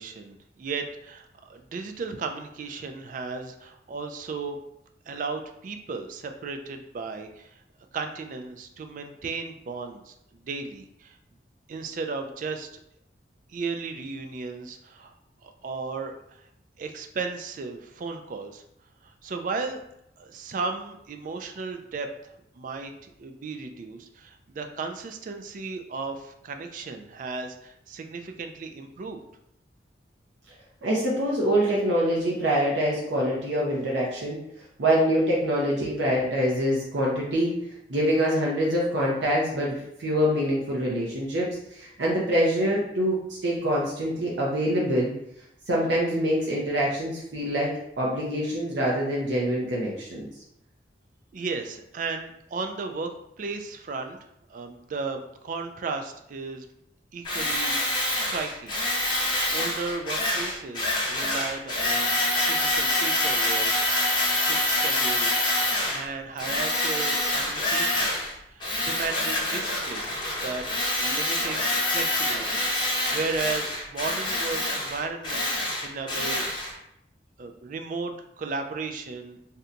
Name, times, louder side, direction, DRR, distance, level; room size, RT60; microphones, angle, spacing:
voice 1, 0.0-4.6 5.1-7.6 7.9-11.2 11.7-12.7 13.5-15.1 15.4-16.5 16.8-18.6 19.0-19.8 20.2-29.2 51.3-54.2 54.5-56.7 57.1-58.8 59.1-63.7 64.4-68.2 68.4-70.1 70.4-76.8 77.4-79.4, right 4 dB, 45° right, 6 dB, 0.3 m, -35 dB
voice 2, 30.8-34.4 34.8-37.5 37.9-41.5 41.7-43.2 43.4-45.1 45.7-47.7 48.0-50.3, equal, 80° right, -4 dB, 0.7 m, -25 dB
Tools, 57.2-66.0 66.4-68.3 68.6-76.7, left 1 dB, 25° left, 0.8 m, -26 dB
2.8 x 2.2 x 3.7 m, 0.78 s
head